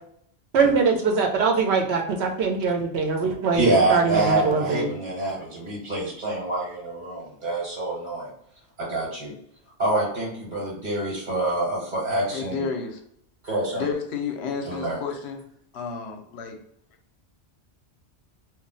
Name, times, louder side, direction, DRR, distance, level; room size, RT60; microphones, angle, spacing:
voice 1, 0.5-4.9, right 4 dB, 80° right, 2 dB, 0.9 m, -22 dB
voice 2, 3.5-8.3 8.8-9.3 9.8-12.7 13.4-13.9 14.7-15.0, right 2 dB, 50° right, -4 dB, 1.0 m, -26 dB
voice 3, 12.3-13.0 13.7-15.4 15.7-16.6, left 5 dB, 80° left, 4 dB, 0.8 m, -31 dB
2.3 x 2.0 x 3.7 m, 0.70 s
omnidirectional pair, 1.1 m